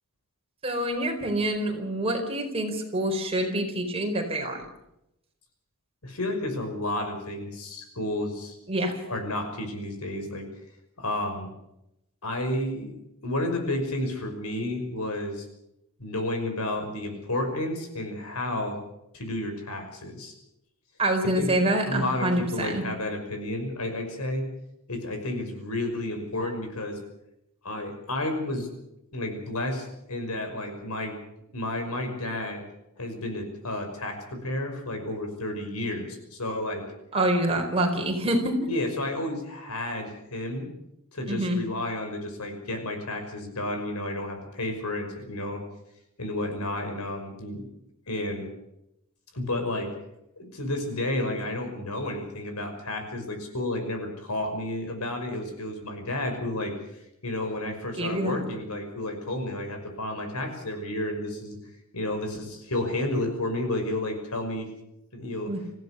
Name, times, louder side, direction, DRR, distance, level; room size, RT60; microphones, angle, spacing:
voice 1, 0.6-4.6 8.7-8.9 21.0-22.8 37.1-38.7 41.3-41.6 58.0-58.4 65.5-65.6, right 1 dB, 25° right, 3 dB, 4.5 m, -26 dB
voice 2, 6.0-8.6 9.1-10.5 11.0-11.5 12.2-15.5 16.0-18.8 19.1-20.3 21.4-21.6 21.9-24.4 24.9-27.0 27.6-28.7 29.1-31.2 31.5-32.6 33.0-36.8 38.7-40.7 41.1-45.6 46.2-47.7 48.1-48.5 49.3-49.9 50.4-56.7 57.2-61.6 61.9-64.7 65.1-65.5, left 1 dB, 90° left, 5 dB, 5.8 m, -31 dB
25.5 x 16.0 x 6.8 m, 0.84 s
head